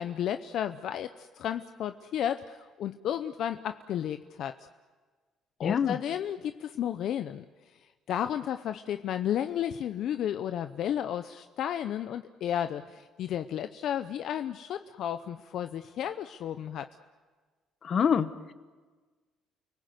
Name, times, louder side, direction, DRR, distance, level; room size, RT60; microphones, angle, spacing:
voice 1, 0.0-4.5 5.6-7.5 8.1-16.9, left 10 dB, 65° left, 9 dB, 0.6 m, -33 dB
voice 2, 5.6-6.0 17.8-18.5, left 7 dB, 45° left, 13 dB, 1.0 m, -26 dB
30.0 x 19.0 x 7.9 m, 1.4 s
cardioid pair, 105°, 0 cm